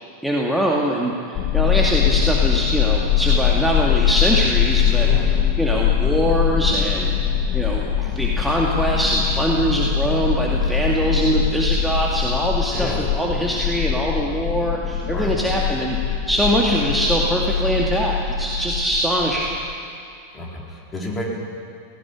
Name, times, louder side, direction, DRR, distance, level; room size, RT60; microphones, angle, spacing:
voice 1, 0.2-5.1 5.6-7.1 7.5-12.9 13.1-19.5, equal, ahead, -3 dB, 2.2 m, -22 dB
sound 1, 1.4-19.7, left 8 dB, 35° left, 1.7 m, -22 dB
voice 2, 12.7-13.1 15.1-15.4 20.3-21.3, left 1 dB, 20° left, -2 dB, 4.7 m, -30 dB
17.5 x 17.0 x 10.0 m, 2.4 s
figure-of-eight pair, 90°, 0 cm